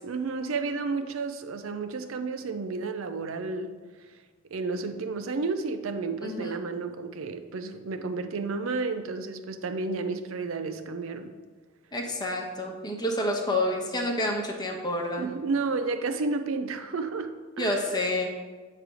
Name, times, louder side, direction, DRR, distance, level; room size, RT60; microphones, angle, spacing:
voice 1, 0.0-3.8 4.5-11.3 15.2-17.9, right 4 dB, 75° right, 9 dB, 0.5 m, -31 dB
voice 2, 6.2-6.6 11.9-15.3 17.6-18.3, left 1 dB, 20° left, 0 dB, 0.9 m, -29 dB
8.1 x 3.3 x 6.1 m, 1.4 s
head